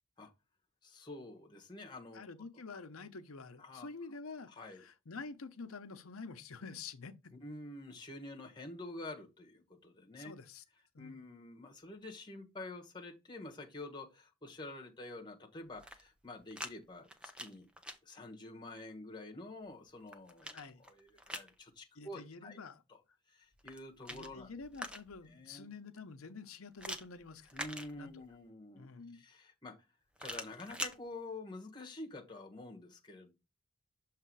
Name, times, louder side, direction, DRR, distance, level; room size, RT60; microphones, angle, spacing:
voice 1, 0.8-2.3 3.6-3.9 4.5-4.8 7.3-10.3 11.0-17.7 18.0-22.6 22.9-23.0 23.3-24.5 25.2-25.7 27.5-29.8 30.2-33.3, left 2 dB, 20° left, 1.2 m, -48 dB
voice 2, 2.1-4.5 4.8-7.1 10.2-10.6 10.9-11.2 20.5-20.8 22.0-22.8 24.1-27.5 28.0-28.1 28.7-29.2, left 4 dB, 85° left, 0.8 m, -48 dB
sound 1, 15.7-16.7 17.0-18.0 19.7-21.5 23.5-25.3 26.8-28.4 30.2-31.0, equal, 5° right, 0.6 m, -45 dB
6.7 x 3.2 x 4.7 m
head